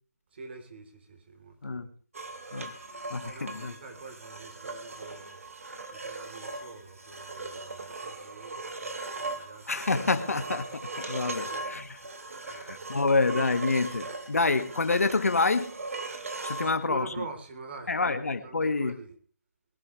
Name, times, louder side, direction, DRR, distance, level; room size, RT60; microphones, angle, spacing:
voice 1, 0.3-1.9 3.2-5.4 5.9-9.7 11.3-11.7 12.4-12.6 16.5-18.0 18.4-19.2, right 3 dB, 40° right, 3.7 m, -45 dB
sound 1, 2.1-16.8, right 3 dB, 60° right, 3.1 m, -39 dB
voice 2, 3.1-3.7 9.7-12.0 12.4-15.7 16.4-17.1 17.9-18.9, left 3 dB, 65° left, 1.9 m, -27 dB
21.5 x 12.0 x 3.3 m
figure-of-eight pair, 160°, 9 cm